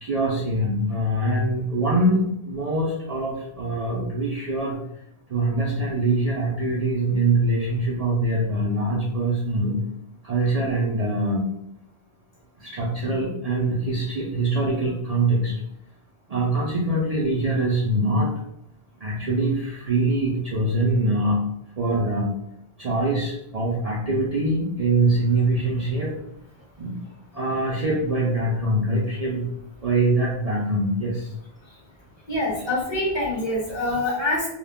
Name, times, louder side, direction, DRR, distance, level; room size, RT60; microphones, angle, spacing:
voice 1, 0.0-4.8 5.3-9.8 10.2-11.4 12.6-15.5 16.3-18.3 19.0-21.4 21.8-22.3 22.8-26.1 26.8-27.0 27.3-29.4 29.8-31.3, right 2 dB, 55° right, -4 dB, 0.4 m, -23 dB
voice 2, 32.3-34.5, left 1 dB, 30° left, -3 dB, 0.8 m, -25 dB
2.2 x 2.2 x 3.4 m, 0.79 s
omnidirectional pair, 1.1 m